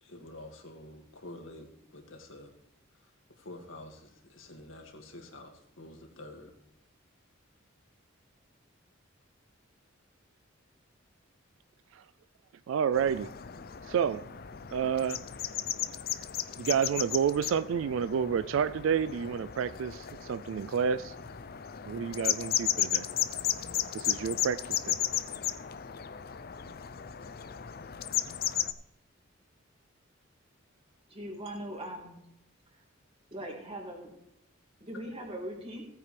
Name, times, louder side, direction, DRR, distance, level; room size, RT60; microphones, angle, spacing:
voice 1, 0.0-2.5 3.4-6.5, left 1 dB, 70° left, 2.2 m, -48 dB
voice 2, 12.7-13.4 13.9-14.3 14.7-15.2 16.6-21.2 21.9-23.1 23.9-25.0, right 7 dB, 70° right, 0.3 m, -30 dB
sound 1, 12.9-28.7, left 10 dB, 50° left, 0.6 m, -35 dB
voice 3, 31.1-32.2 33.3-34.1 34.8-35.8, right 1 dB, 30° right, 3.7 m, -40 dB
17.0 x 9.2 x 3.3 m
head